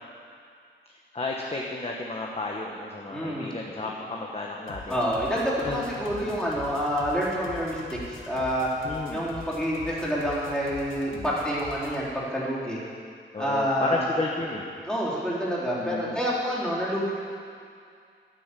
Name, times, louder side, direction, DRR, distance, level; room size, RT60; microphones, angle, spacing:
voice 1, 1.1-5.0 5.6-5.9 6.2-6.4 8.8-9.3 11.1-11.3 13.3-14.7 15.8-16.2, left 2 dB, 30° left, -1 dB, 1.3 m, -32 dB
voice 2, 3.1-3.5 4.9-8.0 8.2-8.7 9.1-12.8 13.4-14.0 14.9-17.1, equal, 5° left, -8 dB, 3.8 m, -28 dB
sound 1, 4.7-12.1, left 3 dB, 80° left, 1.6 m, -43 dB
12.5 x 9.9 x 8.3 m, 2.3 s
wide cardioid pair, 125°, 20 cm